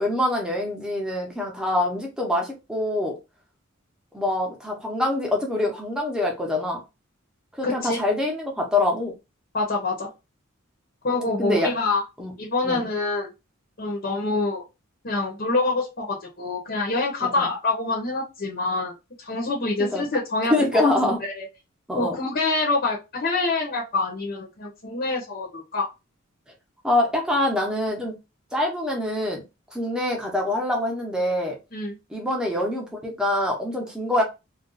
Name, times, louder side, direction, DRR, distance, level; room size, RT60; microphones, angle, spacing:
voice 1, 0.0-3.1 4.1-6.8 7.6-9.1 11.4-11.7 12.2-12.3 12.6-12.9 17.2-17.5 19.8-20.0 20.5-21.2 21.9-22.2 26.8-28.1 28.5-29.4 29.7-31.5 32.1-34.2, left 1 dB, 5° right, 0 dB, 0.8 m, -25 dB
voice 2, 7.6-8.0 9.5-10.1 11.0-12.0 12.4-13.3 13.8-14.6 15.0-21.5 21.9-25.9 31.7-32.0, left 3 dB, 50° left, -1 dB, 0.8 m, -26 dB
2.5 x 2.3 x 3.9 m, 0.26 s
head